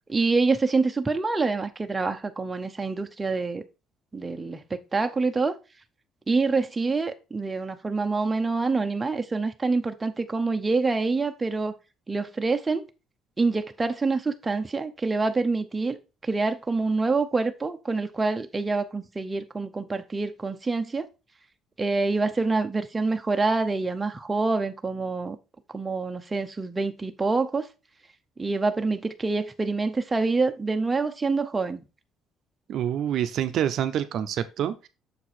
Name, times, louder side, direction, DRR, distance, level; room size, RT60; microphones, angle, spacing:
voice 1, 0.1-3.6 4.1-5.5 6.3-11.8 12.1-12.9 13.4-21.1 21.8-25.4 25.7-27.7 28.4-31.8, right 3 dB, 15° right, 0.6 m, -26 dB
voice 2, 32.7-34.9, right 10 dB, 55° right, 0.6 m, -27 dB
6.7 x 4.6 x 4.1 m
cardioid pair, 155°, 0 cm